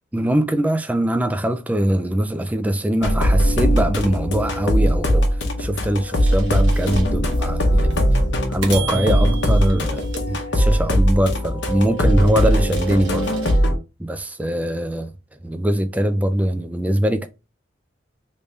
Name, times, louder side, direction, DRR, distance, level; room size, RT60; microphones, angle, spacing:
voice 1, 0.1-8.0 8.5-13.3 14.0-15.1 15.4-17.3, right 1 dB, 10° right, 0.3 m, -22 dB
sound 1, 3.0-13.8, equal, 70° left, 0.8 m, -19 dB
sound 2, 6.2-7.4 7.9-8.1 8.6-11.0 11.5-13.6, right 6 dB, 80° right, 1.0 m, -36 dB
3.5 x 2.6 x 3.2 m
head